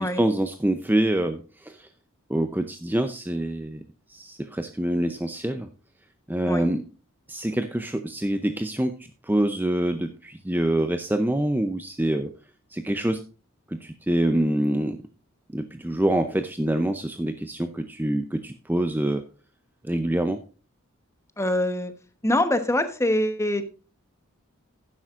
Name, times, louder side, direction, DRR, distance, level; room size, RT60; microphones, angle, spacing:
voice 1, 0.0-1.9 2.3-3.8 4.1-5.7 6.3-6.9 7.3-9.0 9.2-12.3 12.7-13.2 13.7-15.0 15.5-19.2 19.8-20.4, right 1 dB, 10° right, 8 dB, 0.6 m, -25 dB
voice 2, 21.4-21.9 22.2-23.6, left 1 dB, 15° left, 9 dB, 1.1 m, -24 dB
12.0 x 10.5 x 2.5 m, 0.35 s
head